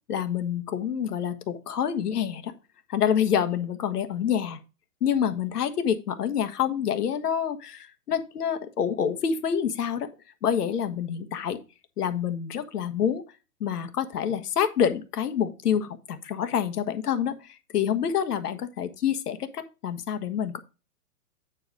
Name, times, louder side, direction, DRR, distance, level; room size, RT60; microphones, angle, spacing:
voice 1, 0.1-2.5 2.9-4.6 5.0-10.1 10.4-11.6 12.0-13.2 13.6-17.4 17.7-20.6, left 8 dB, 75° left, 10 dB, 1.5 m, -27 dB
8.8 x 4.8 x 4.7 m, 0.31 s
hypercardioid pair, 160°, 47 cm